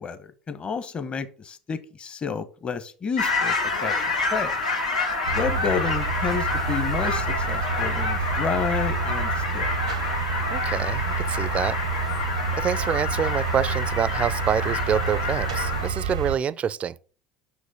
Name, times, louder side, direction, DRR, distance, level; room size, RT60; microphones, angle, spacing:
voice 1, 0.0-3.6 3.8-3.9 4.3-4.5 5.3-9.7, left 6 dB, 30° left, 1.2 m, -30 dB
sound 1, 3.2-15.9, left 3 dB, 90° left, 1.9 m, -28 dB
sound 2, 5.3-16.4, right 6 dB, 90° right, 0.8 m, -29 dB
voice 2, 10.5-11.8 12.6-16.9, right 8 dB, 35° right, 0.5 m, -26 dB
6.3 x 5.2 x 6.3 m
hypercardioid pair, 75°, 3 cm